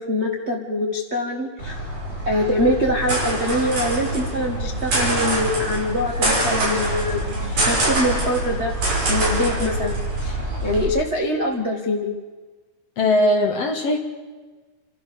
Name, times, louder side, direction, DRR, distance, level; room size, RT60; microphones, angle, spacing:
voice 1, 0.0-1.8 2.2-8.7 9.1-10.0 10.2-12.1, left 1 dB, 60° right, -1 dB, 0.6 m, -24 dB
sound 1, 1.6-10.8, right 1 dB, 45° right, 6.4 m, -24 dB
voice 2, 13.0-14.0, left 1 dB, 55° left, 3 dB, 2.0 m, -19 dB
29.0 x 13.0 x 6.9 m, 1.3 s
omnidirectional pair, 4.5 m